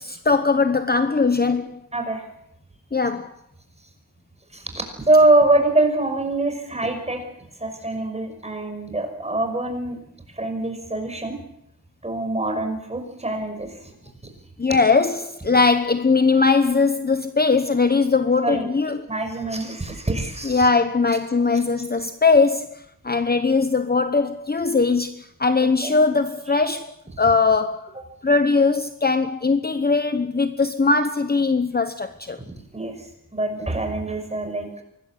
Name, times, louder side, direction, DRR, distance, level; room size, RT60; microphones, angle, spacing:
voice 1, 0.0-1.8 2.9-3.3 14.6-19.1 20.4-27.9 28.2-32.4, left 4 dB, 25° left, 1.0 m, -20 dB
voice 2, 1.9-2.3 4.5-7.2 7.6-10.0 10.3-11.3 12.0-13.9 18.4-18.7 19.1-20.7 25.8-25.9 26.5-26.6 27.2-27.3 32.7-34.8, right 2 dB, 15° right, 5.9 m, -24 dB
24.5 x 20.0 x 8.3 m
wide cardioid pair, 155°, 37 cm